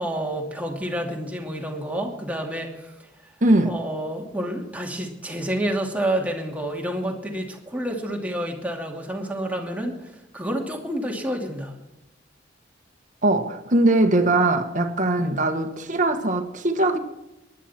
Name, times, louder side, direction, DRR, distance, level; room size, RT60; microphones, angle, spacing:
voice 1, 0.0-2.9 3.6-10.0 10.3-11.7 15.2-15.4, right 1 dB, 10° right, 2.6 m, -29 dB
voice 2, 3.4-3.8 13.2-17.0, right 2 dB, 45° right, 1.5 m, -21 dB
19.5 x 11.5 x 4.4 m
head